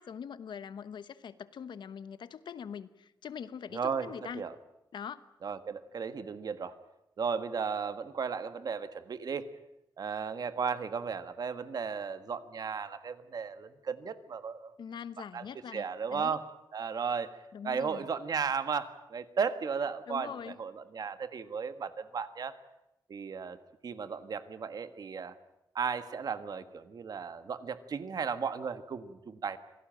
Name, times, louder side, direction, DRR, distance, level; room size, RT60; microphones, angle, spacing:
voice 1, 0.0-4.4 4.9-5.2 14.8-16.4 17.5-18.0 20.1-20.6, left 7 dB, 80° left, 14 dB, 1.1 m, -43 dB
voice 2, 3.7-4.5 5.4-6.7 7.2-9.4 10.0-14.7 15.3-15.4 15.7-16.5 16.7-17.3 17.6-22.5 23.1-23.6 23.8-25.3 25.7-29.6, right 6 dB, 55° right, 11 dB, 1.5 m, -35 dB
26.0 x 17.5 x 9.0 m, 0.89 s
wide cardioid pair, 155°, 8 cm